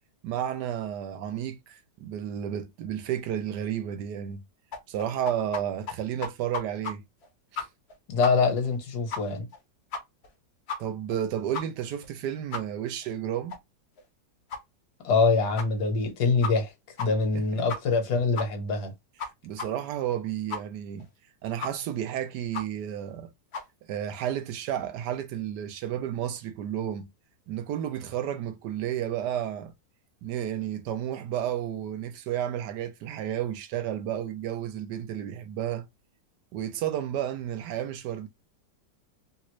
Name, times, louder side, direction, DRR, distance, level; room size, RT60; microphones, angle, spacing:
voice 1, 0.2-4.4 4.9-7.0 7.5-7.7 10.8-13.6 17.3-17.7 19.4-21.1 21.4-23.3 23.9-27.1 27.5-29.7 30.2-35.9 36.5-38.3, right 10 dB, 75° right, 1.1 m, -32 dB
sound 1, 4.7-5.6 5.9-6.0 6.2-6.9 7.2-7.3 7.6-7.9 8.2-8.3 8.6-8.7 9.1-9.2 9.5-9.6 9.9-10.3 10.7-10.8 11.1-11.2 11.5-11.6 12.0-12.1 12.5-12.6 13.0-13.1 13.5-13.6 14.0-14.1 14.5-14.6 15.1-15.2 15.6-15.7 16.0-16.1 16.4-16.7 17.0-17.1 17.3-17.4 17.7-18.0 18.3-18.5 18.8-18.9 19.2-19.3 19.6-19.7 20.0-20.1 20.5-20.6 21.0-21.1 21.6-21.7 22.0-22.1 22.5-22.6 23.0-23.1 23.5-23.6, left 5 dB, 50° left, 0.9 m, -33 dB
voice 2, 8.1-9.5 15.0-16.7 17.0-18.9, left 4 dB, 65° left, 1.5 m, -24 dB
3.2 x 2.5 x 3.0 m
omnidirectional pair, 1.9 m